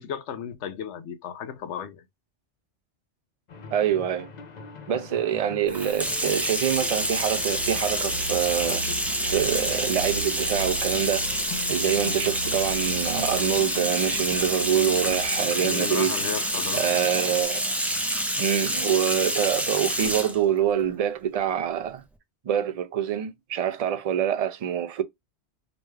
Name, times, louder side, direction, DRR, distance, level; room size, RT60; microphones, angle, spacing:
voice 1, 0.0-2.0 15.6-17.1, left 8 dB, 80° left, 0.9 m, -34 dB
sound 1, 3.5-17.4, left 5 dB, 45° left, 0.7 m, -42 dB
voice 2, 3.7-4.3 4.9-8.8 9.2-11.3 11.7-16.2 16.7-17.8 18.4-22.0 22.5-25.0, right 9 dB, 65° right, 0.3 m, -25 dB
Bathtub (filling or washing), 5.7-20.4, equal, ahead, 0.5 m, -27 dB
Car, 5.9-15.3, right 6 dB, 65° left, 1.8 m, -40 dB
5.1 x 2.2 x 3.2 m
omnidirectional pair, 1.2 m